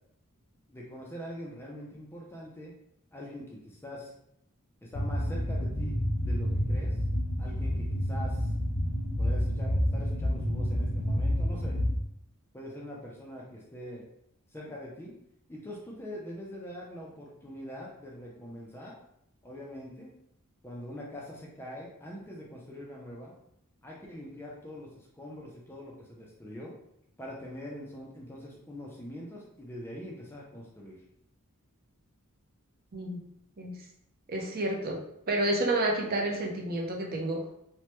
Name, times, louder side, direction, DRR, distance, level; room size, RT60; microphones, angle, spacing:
voice 1, 0.7-2.7 3.1-4.1 4.8-5.9 6.2-7.0 7.4-8.4 9.2-11.8 12.5-14.0 14.5-15.1 15.5-18.9 19.4-20.1 20.6-23.3 23.8-26.7 27.2-31.0, equal, 10° left, -3 dB, 0.4 m, -43 dB
sound 1, 4.9-12.0, equal, 90° left, 0.7 m, -29 dB
voice 2, 32.9-33.2 33.6-33.8 34.3-35.0 35.3-37.5, right 1 dB, 45° right, 0 dB, 0.6 m, -30 dB
3.1 x 2.1 x 2.9 m, 0.77 s
head